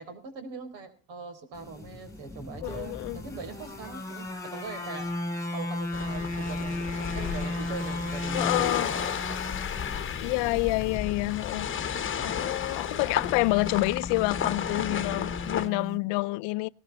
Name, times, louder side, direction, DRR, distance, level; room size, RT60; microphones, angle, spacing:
voice 1, 0.0-5.1 5.5-8.6 9.0-10.1 12.9-13.1 14.8-14.9, right 4 dB, 65° right, 4.4 m, -42 dB
sound 1, 1.5-16.0, left 1 dB, 5° left, 3.1 m, -36 dB
voice 2, 2.6-3.2 8.3-8.9 10.2-11.7 12.2-16.7, left 24 dB, 65° left, 0.6 m, -28 dB
sound 2, 5.9-15.7, left 8 dB, 25° left, 1.3 m, -33 dB
18.0 x 14.0 x 4.1 m
cardioid pair, 120°, 46 cm